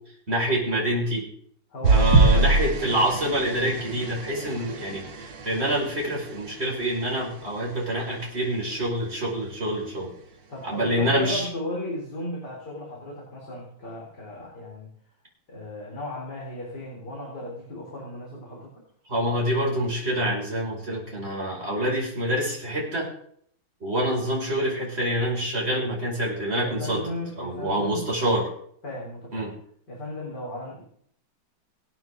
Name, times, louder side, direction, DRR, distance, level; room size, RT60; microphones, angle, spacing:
voice 1, 0.3-1.3 1.9-10.1 10.6-11.5 19.1-23.1 23.8-27.0 27.4-28.5 29.3-29.5, right 1 dB, 30° right, -3 dB, 6.0 m, -26 dB
voice 2, 1.7-2.5 5.7-5.8 10.5-14.9 15.5-18.8 26.5-28.1 28.8-29.5 29.9-30.8, left 1 dB, 50° left, -4 dB, 4.3 m, -35 dB
sound 1, 1.8-6.5 7.1-7.4 7.7-7.8, right 3 dB, 60° right, 2.4 m, -23 dB
26.5 x 9.4 x 3.9 m, 0.64 s
omnidirectional pair, 2.3 m